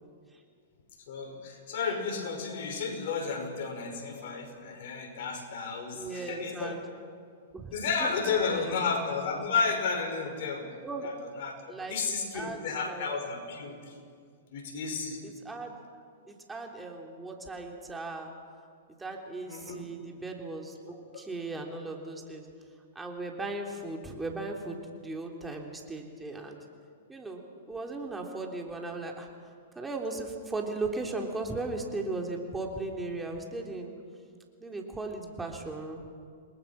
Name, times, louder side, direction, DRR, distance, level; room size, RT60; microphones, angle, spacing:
voice 1, 1.1-6.8 7.7-10.7 11.0-11.6 11.9-14.0 14.5-15.2 19.4-19.8 21.1-21.2, left 5 dB, 60° left, 3 dB, 5.8 m, -32 dB
voice 2, 5.9-6.8 7.5-8.1 10.8-11.1 11.7-13.1 15.2-15.8 16.3-18.3 19.0-22.5 23.0-26.6 27.1-29.3 29.8-33.9 34.6-36.0, right 2 dB, 10° right, 1 dB, 3.5 m, -37 dB
28.5 x 21.0 x 6.0 m, 2.2 s
hypercardioid pair, 125°, 0 cm